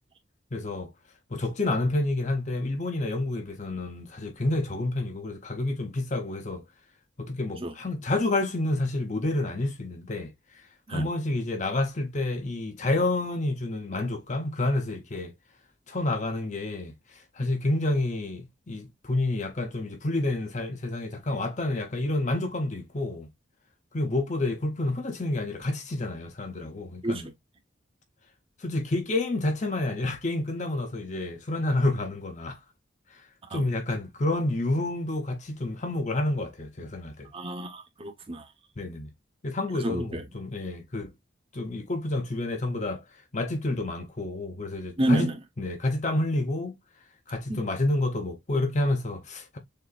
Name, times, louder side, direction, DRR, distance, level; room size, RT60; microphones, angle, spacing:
voice 1, 0.5-0.9 1.3-6.6 7.2-10.3 10.9-15.3 15.9-16.9 17.4-23.3 23.9-27.3 28.6-32.6 33.5-37.3 38.8-39.1 39.4-41.1 41.5-43.0 43.3-45.3 45.6-46.8 47.3-49.6, left 2 dB, 40° left, 0.7 m, -29 dB
voice 2, 37.3-38.5 39.7-40.2 45.0-45.3 47.5-47.6, right 1 dB, 30° right, 0.9 m, -29 dB
6.5 x 2.7 x 2.4 m
head